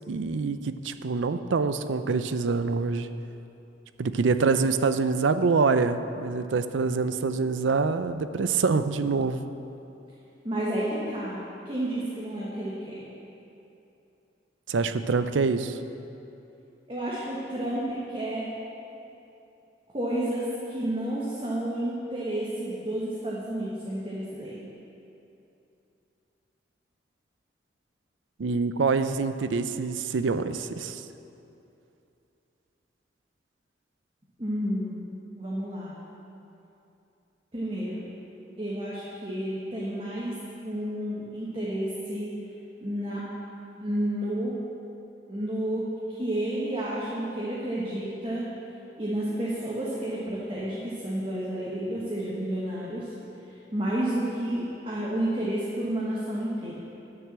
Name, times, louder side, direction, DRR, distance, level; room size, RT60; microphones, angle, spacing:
voice 1, 0.1-3.1 4.0-9.4 14.7-15.8 28.4-31.0, right 4 dB, 85° right, 11 dB, 0.5 m, -25 dB
voice 2, 10.4-11.4 11.6-13.0 16.9-18.5 19.9-24.7 34.4-35.0 35.3-35.9 37.5-38.0 38.6-42.3 42.8-43.3 43.8-44.6 45.3-48.5 49.0-53.1 53.5-56.8, right 1 dB, 30° right, -7 dB, 1.4 m, -31 dB
10.5 x 6.9 x 7.3 m, 2.8 s
head